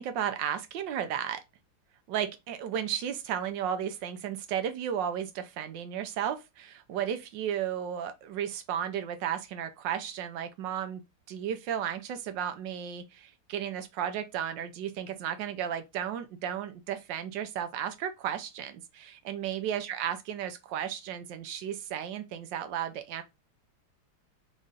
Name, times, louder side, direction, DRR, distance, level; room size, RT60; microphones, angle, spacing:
voice 1, 0.0-1.4 2.1-11.0 11.3-23.2, right 9 dB, 70° right, 1.2 m, -34 dB
4.0 x 3.1 x 3.6 m
omnidirectional pair, 2.3 m